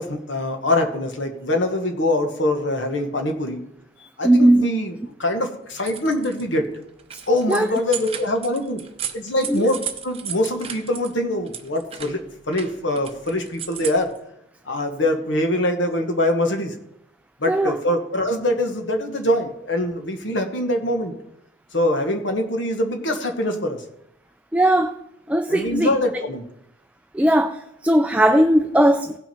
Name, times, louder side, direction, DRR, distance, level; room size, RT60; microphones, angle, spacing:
voice 1, 0.0-3.6 4.2-6.7 7.3-8.8 9.1-9.8 10.0-12.2 12.5-14.1 14.6-16.8 17.4-21.1 21.7-23.8 25.5-26.4, left 1 dB, 75° left, 1.3 m, -23 dB
voice 2, 4.2-4.7 7.1-7.2 7.5-7.7 9.5-9.7 17.5-17.8 24.5-25.0 25.3-25.9 27.1-29.2, right 1 dB, 5° right, 0.3 m, -18 dB
sound 1, 5.7-6.4 6.8-11.1 11.5-14.2, right 8 dB, 30° right, 0.8 m, -35 dB
17.0 x 6.1 x 4.4 m
head